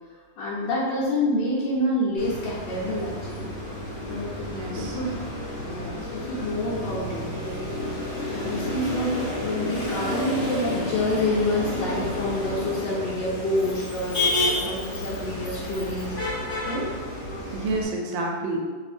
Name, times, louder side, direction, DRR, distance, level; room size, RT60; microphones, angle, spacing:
voice 1, 0.1-3.5 4.0-4.5 4.7-5.2 5.6-14.2 14.5-16.2 16.6-16.9 17.4-17.6, left 1 dB, 80° left, -5 dB, 1.3 m, -28 dB
Motor vehicle (road), 2.2-17.9, left 1 dB, 45° left, 1.0 m, -30 dB
voice 2, 4.5-5.0 7.2-7.4 17.5-18.6, right 2 dB, 90° right, 0 dB, 1.3 m, -29 dB
3.0 x 2.6 x 3.3 m, 1.5 s
omnidirectional pair, 2.0 m